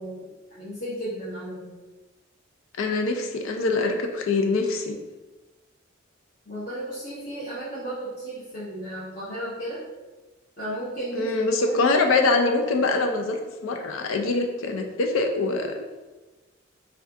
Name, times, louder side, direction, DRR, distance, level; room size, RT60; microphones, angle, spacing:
voice 1, 0.0-1.7 6.5-9.9 10.6-11.3 11.7-11.8, right 1 dB, 45° left, -11 dB, 0.8 m, -34 dB
voice 2, 2.8-4.9 11.1-15.8, left 3 dB, 80° left, 4 dB, 0.4 m, -24 dB
2.5 x 2.3 x 3.5 m, 1.2 s
head